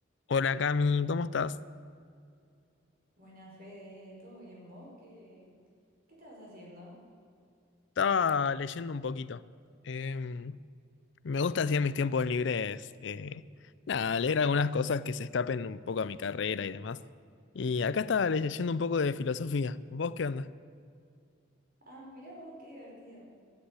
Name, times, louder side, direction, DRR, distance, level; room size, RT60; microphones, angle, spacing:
voice 1, 0.3-1.6 8.0-9.4 9.8-10.6 11.2-13.5 13.9-17.0 17.5-20.5, left 5 dB, 65° left, 18 dB, 0.5 m, -30 dB
voice 2, 3.2-5.5 6.1-7.0 21.8-23.2, equal, 50° right, -3 dB, 5.3 m, -49 dB
13.5 x 10.5 x 9.6 m, 2.4 s
head